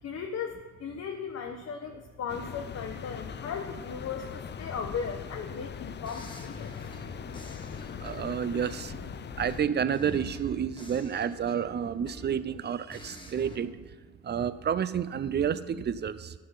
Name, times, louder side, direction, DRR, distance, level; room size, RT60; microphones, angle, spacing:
voice 1, 0.0-6.8, left 6 dB, 55° left, 4 dB, 1.0 m, -37 dB
sound 1, 2.3-9.6, left 7 dB, 35° left, 0.5 m, -40 dB
sound 2, 6.1-9.1 9.5-12.5 12.9-13.6, left 2 dB, 15° left, 1.5 m, -48 dB
voice 2, 8.0-8.9 9.4-13.9 14.2-16.3, right 8 dB, 35° right, 14 dB, 0.6 m, -30 dB
13.0 x 5.7 x 5.6 m, 1.5 s
cardioid pair, 90°, 30 cm